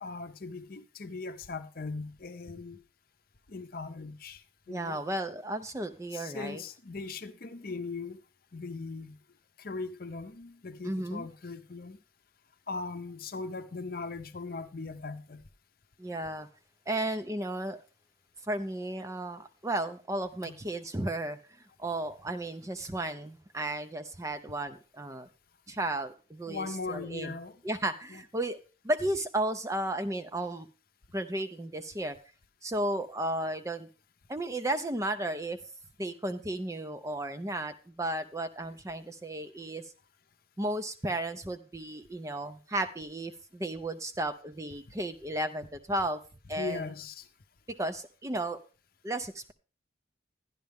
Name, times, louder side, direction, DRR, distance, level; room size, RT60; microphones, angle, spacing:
voice 1, 0.0-2.8 3.5-5.0 6.1-8.2 8.5-9.2 9.6-12.0 12.7-15.4 20.4-20.6 26.5-27.6 28.1-28.2 46.6-47.3, left 3 dB, 50° left, 0.7 m, -39 dB
voice 2, 4.7-6.6 10.8-11.3 16.0-16.5 16.9-17.8 18.5-21.4 21.8-25.3 25.7-27.3 27.6-28.6 28.8-30.7 31.1-32.2 32.6-33.9 34.3-35.6 36.0-39.9 40.6-46.2 46.5-46.8 47.7-48.6 49.0-49.5, right 1 dB, 15° right, 0.5 m, -34 dB
11.5 x 10.5 x 3.5 m
head